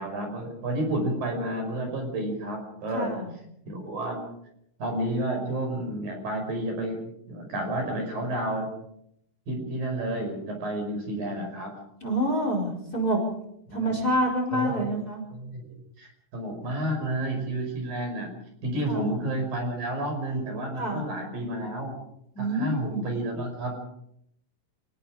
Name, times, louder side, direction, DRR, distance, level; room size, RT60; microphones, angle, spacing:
voice 1, 0.0-3.1 3.7-4.2 4.8-8.7 9.5-11.7 13.7-14.0 14.5-14.9 15.3-15.7 16.0-18.3 18.6-22.0 22.4-23.8, right 1 dB, 60° right, 4 dB, 7.0 m, -30 dB
voice 2, 2.9-3.3 12.0-13.2 13.7-15.2 18.9-19.1 20.8-21.0 22.3-23.0, right 1 dB, 25° left, 2 dB, 5.0 m, -27 dB
28.5 x 19.0 x 5.0 m, 0.73 s
omnidirectional pair, 4.5 m